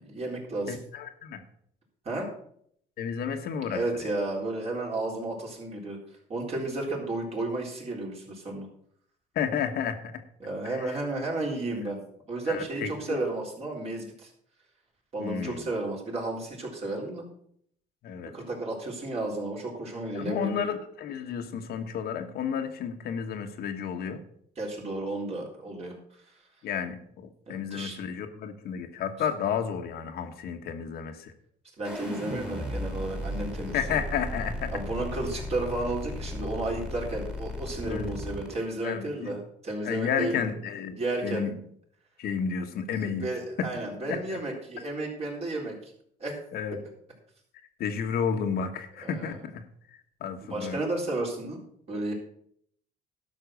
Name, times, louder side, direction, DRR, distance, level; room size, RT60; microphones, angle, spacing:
voice 1, 0.0-0.8 2.1-2.3 3.7-6.0 6.3-8.7 10.4-12.0 12.3-14.3 15.1-17.2 18.3-20.6 24.6-25.9 27.5-28.0 31.8-34.0 34.7-40.5 41.0-41.5 43.0-45.9 46.2-46.4 49.0-49.4 50.4-51.6 51.9-52.1, right 2 dB, 40° right, -1 dB, 3.8 m, -33 dB
voice 2, 0.7-1.4 3.0-4.1 9.3-10.2 10.6-10.9 12.5-13.2 15.2-15.7 18.0-18.3 20.1-24.2 26.6-31.3 33.7-34.7 37.8-38.1 38.8-39.3 39.8-41.6 42.2-43.3 43.6-43.7 44.1-44.4 46.5-46.8 47.8-49.6 50.2-50.8, left 7 dB, 65° left, 6 dB, 1.3 m, -32 dB
sound 1, 31.8-38.6, left 1 dB, 5° right, 2.2 m, -35 dB
12.0 x 6.1 x 6.3 m, 0.66 s
cardioid pair, 110°, 17 cm